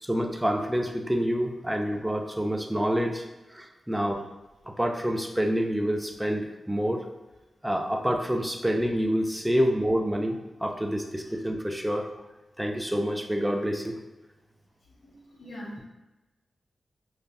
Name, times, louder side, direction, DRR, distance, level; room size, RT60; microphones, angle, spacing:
voice 1, 0.0-3.2 3.5-4.2 4.8-7.0 7.6-12.1 12.6-14.0, equal, 5° right, 2 dB, 0.4 m, -27 dB
voice 2, 14.8-15.9, equal, 85° left, -5 dB, 1.0 m, -44 dB
5.2 x 2.3 x 2.2 m, 1.1 s
cardioid pair, 75°, 0 cm